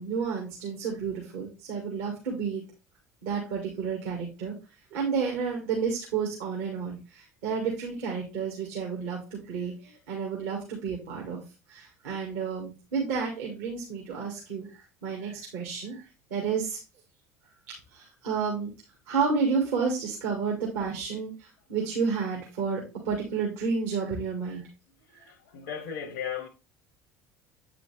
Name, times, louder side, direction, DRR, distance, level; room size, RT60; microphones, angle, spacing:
voice 1, 0.0-2.6 3.2-4.5 4.9-11.4 11.7-16.0 16.3-16.8 17.9-18.7 19.1-24.6, right 5 dB, 65° right, 2.1 m, -31 dB
voice 2, 25.1-26.5, left 8 dB, 65° left, 1.0 m, -36 dB
8.5 x 4.9 x 3.3 m
figure-of-eight pair, 65°, 9 cm